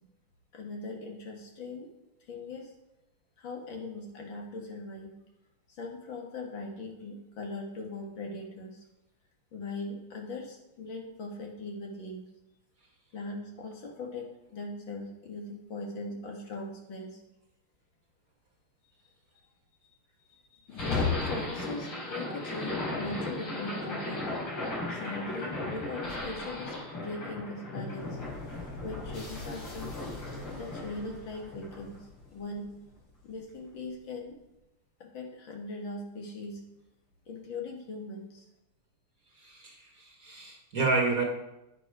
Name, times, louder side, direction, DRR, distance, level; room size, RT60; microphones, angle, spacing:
voice 1, 0.5-1.9 2.3-2.7 3.4-5.2 5.7-8.8 9.5-12.3 13.1-17.2 20.5-24.2 24.9-28.2 28.8-29.9 30.5-32.1 32.3-32.7 33.2-34.4 35.0-36.6 37.3-38.5, left 2 dB, 60° left, 1 dB, 2.4 m, -40 dB
sound 1, 20.7-32.9, left 2 dB, 85° left, 5.3 m, -36 dB
voice 2, 39.4-41.2, right 3 dB, 45° right, 1 dB, 1.8 m, -30 dB
10.0 x 10.0 x 4.9 m, 0.91 s
omnidirectional pair, 2.4 m